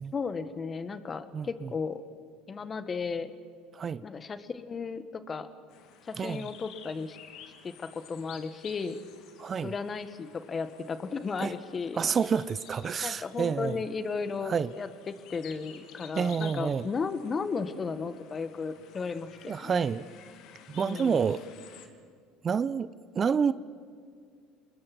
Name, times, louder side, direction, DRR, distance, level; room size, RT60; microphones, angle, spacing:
voice 1, 0.1-2.0 2.5-3.3 4.0-5.5 6.0-7.2 7.6-9.0 9.6-12.0 13.0-19.8 20.8-21.2, left 5 dB, 30° left, 1.7 m, -35 dB
voice 2, 1.3-1.7 3.7-4.0 6.2-6.5 9.4-9.7 11.4-11.5 11.9-13.8 14.4-14.7 16.1-16.8 19.5-20.0 20.7-21.4 22.4-22.9 23.1-23.5, right 6 dB, 35° right, 0.7 m, -28 dB
sound 1, 5.7-21.9, left 8 dB, 65° left, 2.4 m, -52 dB
28.0 x 21.0 x 6.2 m
hypercardioid pair, 75°, 0 cm